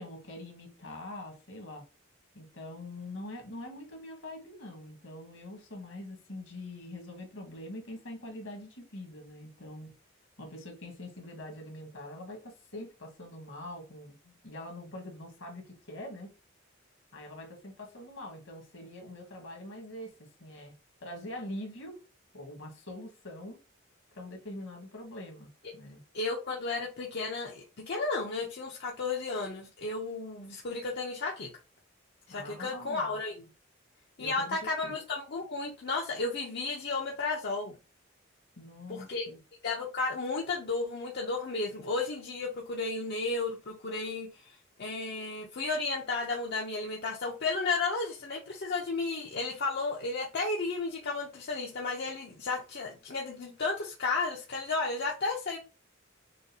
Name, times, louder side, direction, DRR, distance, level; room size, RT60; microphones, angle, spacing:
voice 1, 0.0-1.8 2.4-9.9 10.4-16.3 17.1-20.7 21.0-22.0 22.3-23.6 24.1-26.0 32.3-33.2 34.2-34.6 34.8-34.9 38.6-39.4, left 1 dB, 75° left, 1.8 m, -44 dB
voice 2, 26.1-31.5 32.3-33.4 34.2-37.8 38.9-39.3 39.6-55.6, left 3 dB, 55° left, 0.8 m, -33 dB
6.3 x 2.5 x 2.9 m
head